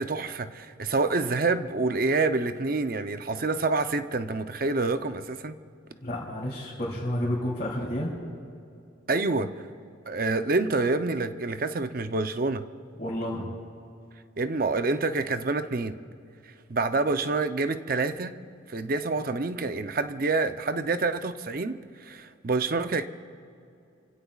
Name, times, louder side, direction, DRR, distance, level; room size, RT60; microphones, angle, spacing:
voice 1, 0.0-5.6 9.1-9.5 10.1-12.6 14.4-16.0 16.7-18.3 18.7-23.1, right 3 dB, 45° right, 10 dB, 0.6 m, -27 dB
voice 2, 6.0-8.1 13.0-13.5, left 1 dB, 35° left, -8 dB, 3.1 m, -30 dB
29.5 x 16.5 x 2.4 m, 2.5 s
head